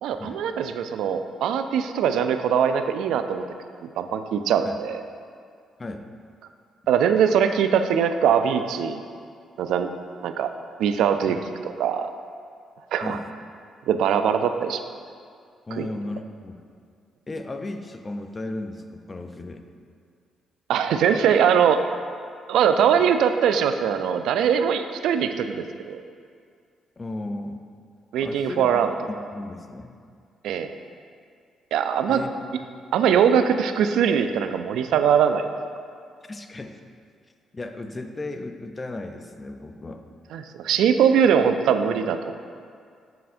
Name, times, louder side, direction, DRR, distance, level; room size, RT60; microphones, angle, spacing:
voice 1, 0.0-3.4 3.8-5.0 6.9-9.1 9.6-9.9 10.2-10.5 10.8-11.4 11.6-12.1 12.9-13.2 13.9-14.8 15.8-15.9 20.7-21.8 22.5-26.0 28.1-28.9 30.4-30.7 31.7-32.2 32.9-35.5 40.3-42.3, right 8 dB, 80° right, 8 dB, 0.3 m, -21 dB
voice 2, 15.7-16.6 17.3-19.6 27.0-27.6 28.2-30.0 32.1-32.6 36.3-36.8 37.5-40.0, left 2 dB, 25° left, 7 dB, 0.4 m, -35 dB
7.7 x 5.3 x 2.5 m, 2.2 s
cardioid pair, 90°, 0 cm